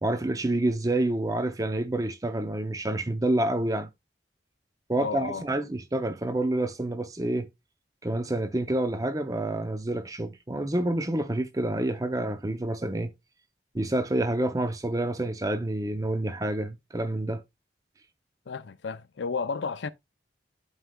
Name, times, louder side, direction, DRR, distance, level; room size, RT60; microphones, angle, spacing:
voice 1, 0.0-3.9 4.9-7.5 8.0-13.1 13.7-17.4, right 1 dB, 20° right, 0.6 m, -28 dB
voice 2, 5.0-5.5 18.5-19.9, left 5 dB, 80° left, 0.5 m, -32 dB
11.0 x 4.8 x 2.3 m
head